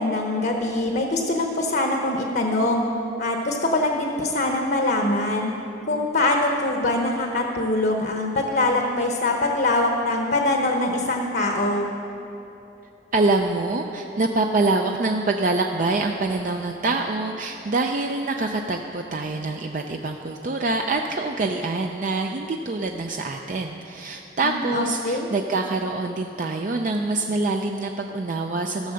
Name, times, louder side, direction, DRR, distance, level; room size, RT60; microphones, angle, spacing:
voice 1, 0.0-2.8 3.2-5.5 5.9-11.9 24.4-25.3, left 2 dB, 55° left, 2 dB, 0.9 m, -23 dB
voice 2, 13.1-28.9, right 2 dB, 45° right, 3 dB, 0.4 m, -25 dB
14.5 x 6.8 x 6.4 m, 2.9 s
head